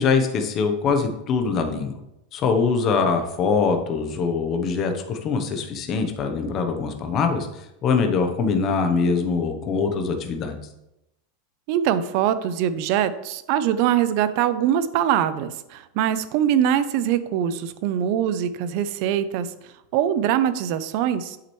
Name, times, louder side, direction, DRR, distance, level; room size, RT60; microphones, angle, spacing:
voice 1, 0.0-1.9 2.3-10.6, left 5 dB, 25° left, 5 dB, 0.8 m, -23 dB
voice 2, 11.7-21.4, right 10 dB, 40° right, 14 dB, 0.5 m, -23 dB
8.3 x 7.5 x 3.1 m, 0.88 s
supercardioid pair, 180°, 0 cm